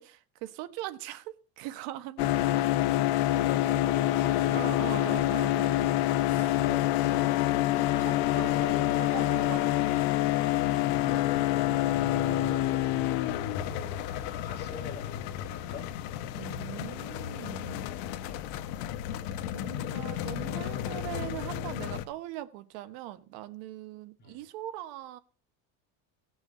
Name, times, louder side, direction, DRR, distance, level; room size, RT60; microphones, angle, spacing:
voice 1, 0.0-2.3 4.5-5.9 6.3-6.6 7.7-8.9 9.1-9.8 16.3-17.9 19.5-25.2, right 14 dB, 60° right, 1.4 m, -41 dB
sound 1, 2.2-22.0, left 14 dB, 60° left, 1.1 m, -28 dB
voice 2, 2.4-2.8 3.2-5.4 6.5-7.2 8.1-9.1 11.0-15.9 18.2-18.5 24.2-24.4, left 4 dB, 25° left, 3.3 m, -45 dB
17.5 x 6.3 x 7.6 m
cardioid pair, 170°, 42 cm